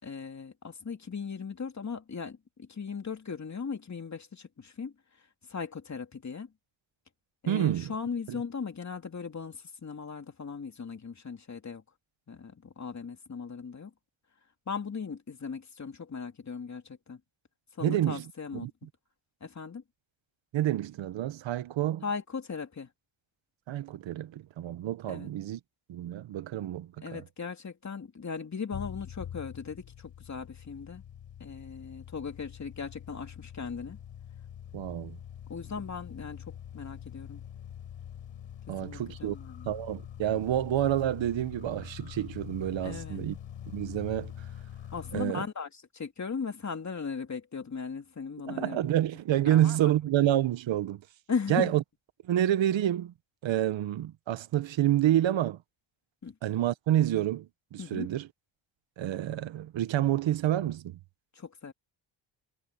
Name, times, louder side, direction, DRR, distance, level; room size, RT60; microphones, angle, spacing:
voice 1, 0.0-4.9 5.5-6.5 7.4-11.8 12.3-13.9 14.7-17.2 17.7-18.7 19.4-19.8 22.0-22.9 25.1-25.3 27.0-31.0 31.4-34.0 35.5-37.4 38.8-39.7 42.8-43.3 44.9-48.8 49.4-49.9 51.3-51.7 56.2-56.3 57.8-58.1 61.3-61.7, left 5 dB, 35° left, 3.0 m, -38 dB
voice 2, 7.5-7.9 8.3-8.4 17.8-18.2 18.5-18.7 20.5-22.0 23.7-25.6 25.9-27.2 34.7-35.2 38.7-39.3 39.6-43.3 43.7-44.3 45.1-45.4 48.5-51.0 51.5-51.8 52.3-53.1 53.4-55.6 56.4-57.5 57.7-58.3 59.0-61.0, right 12 dB, 75° right, 1.2 m, -28 dB
sound 1, 28.7-45.2, left 10 dB, 75° left, 7.4 m, -44 dB
cardioid pair, 85°, 46 cm